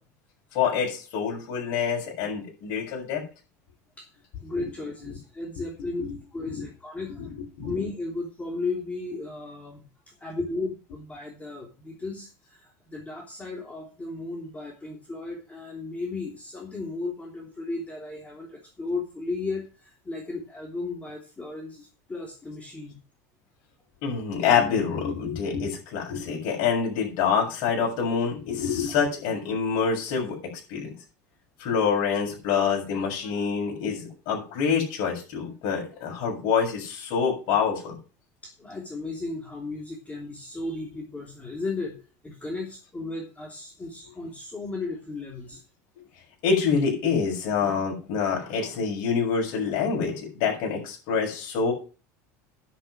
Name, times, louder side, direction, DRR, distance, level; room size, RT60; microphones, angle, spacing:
voice 1, 0.5-3.2 6.5-6.7 7.2-7.3 7.6-7.7 24.0-30.9 31.6-38.0 46.4-51.7, left 6 dB, 65° left, -1 dB, 6.8 m, -26 dB
voice 2, 4.4-7.3 7.6-23.0 38.4-42.0 42.2-45.6, left 3 dB, 15° left, 0 dB, 3.2 m, -35 dB
10.0 x 8.1 x 6.4 m, 0.35 s
supercardioid pair, 105°, 9 cm